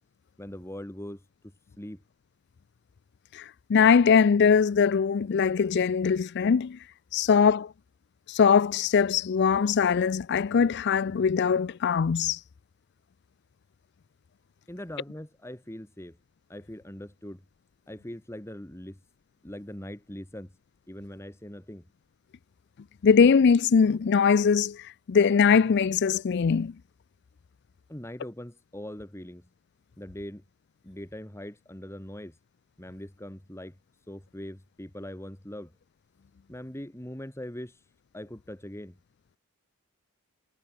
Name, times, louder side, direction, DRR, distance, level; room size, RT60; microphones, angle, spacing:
voice 1, 0.4-2.0 14.7-16.2 16.5-17.4 17.9-19.0 19.4-20.5 20.9-21.8 27.9-29.5 30.0-30.4 30.8-32.4 32.8-33.8 34.1-35.7 36.5-39.0, left 1 dB, 10° left, 1.5 m, -41 dB
voice 2, 3.3-6.9 7.1-7.7 8.3-12.4 23.0-26.7, left 6 dB, 50° left, 0.4 m, -22 dB
head